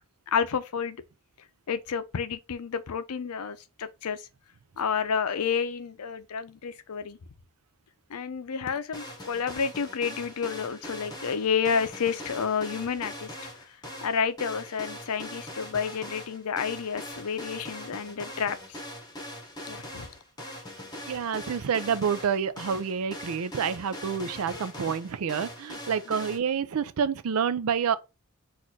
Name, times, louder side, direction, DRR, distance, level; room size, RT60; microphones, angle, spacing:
voice 1, 0.3-1.0 1.7-4.2 4.8-7.2 8.1-13.3 14.0-18.8 19.7-20.1, left 6 dB, 85° left, 0.5 m, -30 dB
sound 1, 8.9-26.4, left 1 dB, 20° left, 1.0 m, -41 dB
voice 2, 21.0-28.0, right 7 dB, 75° right, 0.4 m, -28 dB
4.2 x 2.5 x 4.5 m
head